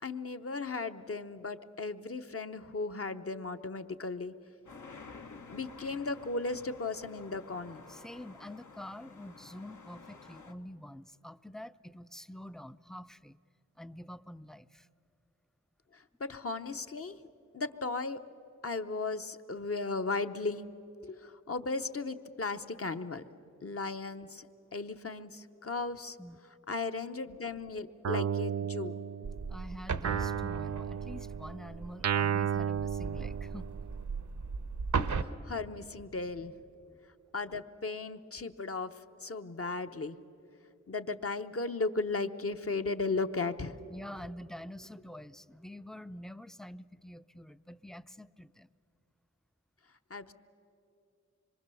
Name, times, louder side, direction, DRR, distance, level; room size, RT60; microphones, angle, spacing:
voice 1, 0.0-4.3 5.3-7.8 15.9-17.2 17.5-18.2 18.6-20.7 21.0-23.2 23.6-24.5 24.7-26.2 26.7-29.0 35.1-36.5 37.3-40.2 40.9-43.8 50.1-50.3, left 3 dB, 50° left, 8 dB, 0.9 m, -36 dB
sound 1, 4.7-10.5, left 4 dB, 80° left, 1.3 m, -51 dB
voice 2, 7.9-13.4 13.8-14.9 26.2-26.4 29.5-33.7 43.9-48.7, left 1 dB, ahead, 13 dB, 0.5 m, -46 dB
Guitar, 28.0-29.6 30.0-33.9, right 7 dB, 60° right, 0.5 m, -33 dB
sound 2, 29.2-35.2, right 5 dB, 80° right, 0.9 m, -37 dB
26.0 x 23.0 x 7.0 m, 2.8 s
wide cardioid pair, 60°, 30 cm